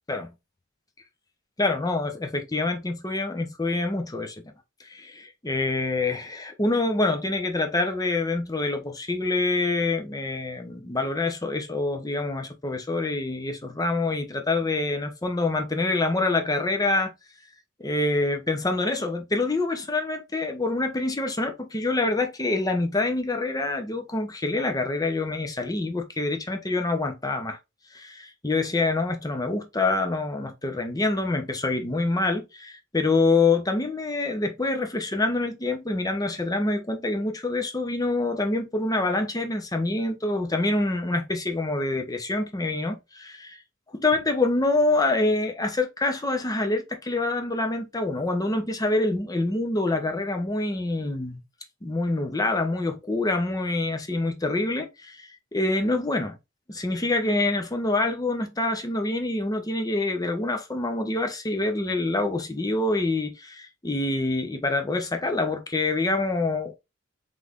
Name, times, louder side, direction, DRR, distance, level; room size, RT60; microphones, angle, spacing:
voice 1, 1.6-4.3 4.8-17.1 17.8-27.6 27.9-43.6 43.9-51.4 51.8-56.4 56.7-66.7, left 2 dB, 20° left, 0.7 m, -26 dB
3.8 x 3.2 x 3.5 m
head